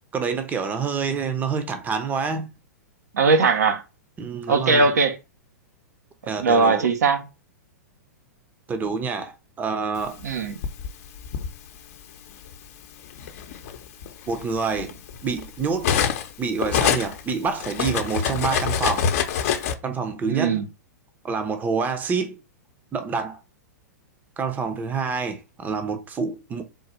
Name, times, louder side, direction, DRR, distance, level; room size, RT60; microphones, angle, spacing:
voice 1, 0.1-2.5 4.2-4.9 6.3-6.9 8.7-10.2 14.3-14.9 15.2-16.0 16.4-19.1 19.8-20.7 21.2-22.4 22.9-23.4 24.4-26.6, right 5 dB, 20° right, 0.7 m, -27 dB
voice 2, 3.1-3.8 4.5-5.2 6.4-7.2 10.2-10.5 20.3-20.6, right 4 dB, 75° right, 0.9 m, -19 dB
Cutlery silverware, 10.2-11.5 12.5-12.7 13.1-16.3 16.6-19.7, left 8 dB, 55° left, 0.8 m, -25 dB
3.9 x 2.6 x 4.3 m
hypercardioid pair, 110°, 9 cm